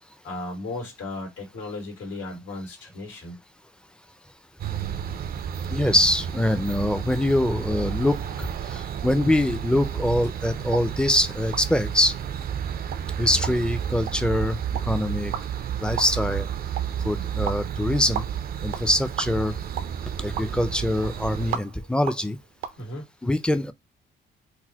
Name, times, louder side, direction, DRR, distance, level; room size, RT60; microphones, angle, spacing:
voice 1, 0.2-3.4 22.8-23.1, left 2 dB, 80° left, 1.8 m, -35 dB
sound 1, 4.6-21.6, right 9 dB, 50° right, 0.5 m, -31 dB
voice 2, 5.7-12.2 13.2-15.3 15.8-16.5 17.0-18.2 18.6-19.6 20.2-22.4 23.2-23.7, left 1 dB, 5° left, 0.5 m, -24 dB
sound 2, 14.6-22.8, right 8 dB, 90° right, 0.7 m, -39 dB
4.1 x 2.1 x 2.8 m
cardioid pair, 90°, 20 cm